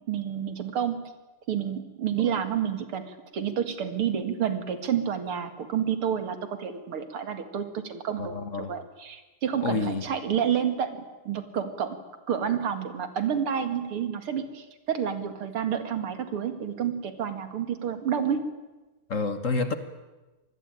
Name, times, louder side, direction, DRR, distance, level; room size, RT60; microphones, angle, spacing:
voice 1, 0.1-1.0 1.5-12.0 12.3-18.4, right 8 dB, 85° right, 9 dB, 2.9 m, -29 dB
voice 2, 8.2-8.7 9.6-10.0 19.1-19.7, left 4 dB, 40° left, 10 dB, 1.5 m, -28 dB
26.5 x 20.0 x 9.1 m, 1.1 s
omnidirectional pair, 2.3 m